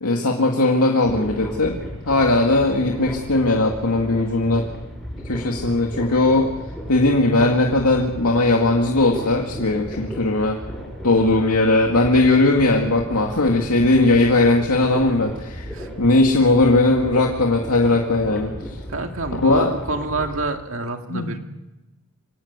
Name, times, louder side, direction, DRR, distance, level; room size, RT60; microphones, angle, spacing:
voice 1, 0.0-4.6 5.3-6.5 6.9-10.6 11.0-15.7 16.0-18.8 19.3-19.7 21.1-21.4, left 2 dB, 85° left, 0 dB, 2.3 m, -18 dB
sound 1, 1.0-20.4, equal, ahead, 7.9 m, -35 dB
voice 2, 18.9-21.4, right 2 dB, 60° right, 4 dB, 2.3 m, -27 dB
26.0 x 18.0 x 8.2 m, 1.0 s
head